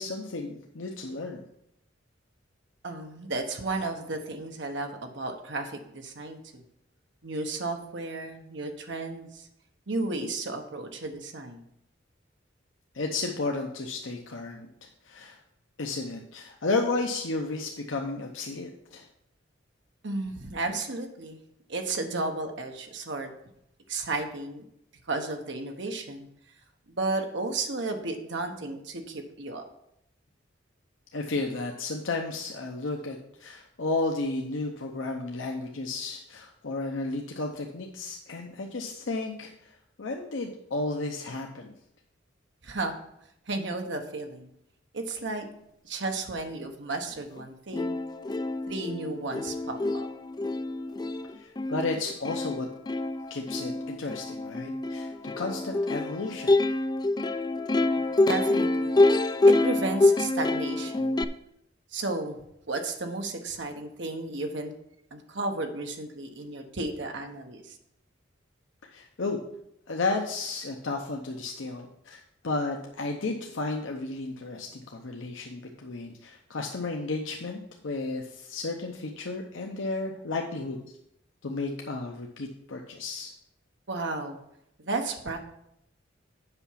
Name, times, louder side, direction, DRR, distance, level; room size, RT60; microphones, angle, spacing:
voice 1, 0.0-1.4 12.9-14.7 15.1-15.4 15.8-19.1 31.1-41.7 51.4-52.7 53.3-56.6 68.9-69.4 69.9-80.8 81.4-83.3, left 3 dB, 75° left, 1 dB, 0.8 m, -33 dB
voice 2, 2.8-6.6 7.2-9.5 9.9-11.7 20.0-21.4 21.7-23.3 23.9-24.6 25.1-26.3 26.9-29.6 42.6-43.0 43.5-44.5 44.9-45.5 45.8-48.0 48.7-50.1 58.3-59.0 59.5-61.2 61.9-62.4 62.7-64.7 65.1-67.8 83.9-84.4 84.8-85.4, right 2 dB, 65° right, 5 dB, 1.2 m, -33 dB
Plucked string instrument, 47.4-47.5 47.7-61.2, left 2 dB, 20° left, 0.3 m, -26 dB
7.9 x 5.8 x 5.7 m, 0.76 s
head